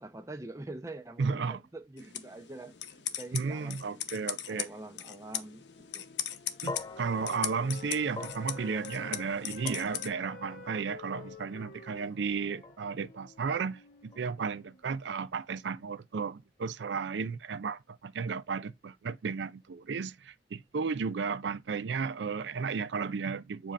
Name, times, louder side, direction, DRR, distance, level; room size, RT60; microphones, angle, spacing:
voice 1, 0.0-4.0 4.5-5.7 5.9-6.1, right 2 dB, 20° right, 0.7 m, -45 dB
voice 2, 1.2-1.6 3.3-4.7 6.6-23.7, right 5 dB, 85° right, 0.4 m, -34 dB
sound 1, 2.0-10.1, left 11 dB, 85° left, 0.7 m, -39 dB
Wind instrument woodwind instrument, 4.3-9.2 9.5-14.8, left 4 dB, 55° left, 0.9 m, -51 dB
sound 2, 6.7-15.0, left 3 dB, 20° left, 0.4 m, -47 dB
7.4 x 2.8 x 5.0 m
head